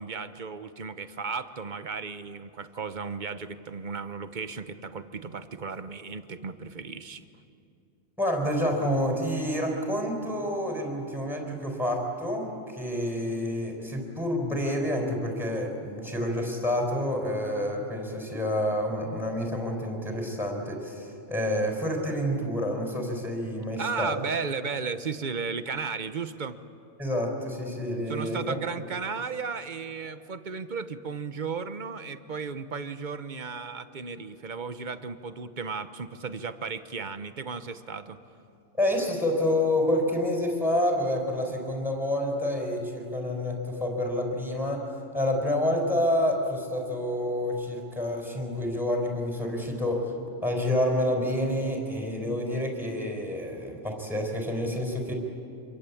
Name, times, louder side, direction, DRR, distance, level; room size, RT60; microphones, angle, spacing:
voice 1, 0.0-7.3 23.8-26.6 28.1-38.2, right 5 dB, 40° right, 11 dB, 1.0 m, -35 dB
voice 2, 8.2-24.2 27.0-28.6 38.8-44.8 45.1-50.1 50.4-55.1, left 1 dB, ahead, 1 dB, 4.6 m, -28 dB
26.5 x 23.5 x 8.6 m, 2.6 s
omnidirectional pair, 1.3 m